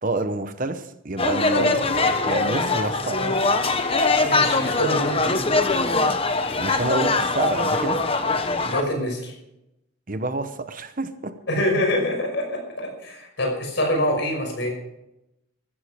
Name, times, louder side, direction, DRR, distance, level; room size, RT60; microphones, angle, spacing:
voice 1, 0.0-3.3 6.6-8.0 10.1-11.4, right 2 dB, 40° right, 10 dB, 0.9 m, -28 dB
sound 1, 1.2-8.8, left 3 dB, 25° left, 1.1 m, -22 dB
voice 2, 4.2-5.4 8.6-9.3 11.5-14.7, left 1 dB, 60° left, 2 dB, 5.7 m, -25 dB
15.0 x 14.0 x 5.0 m, 0.87 s
head